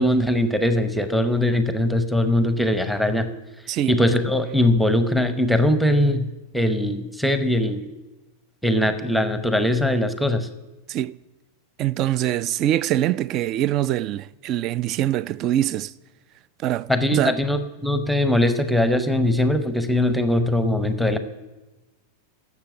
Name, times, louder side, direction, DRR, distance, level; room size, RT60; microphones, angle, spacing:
voice 1, 0.0-3.3 3.9-6.3 6.5-7.8 8.6-10.5 16.9-21.2, left 1 dB, ahead, 0.8 m, -21 dB
voice 2, 11.8-15.9 16.6-17.4, right 12 dB, 35° right, 0.3 m, -24 dB
12.0 x 7.2 x 7.9 m
figure-of-eight pair, 90°, 0 cm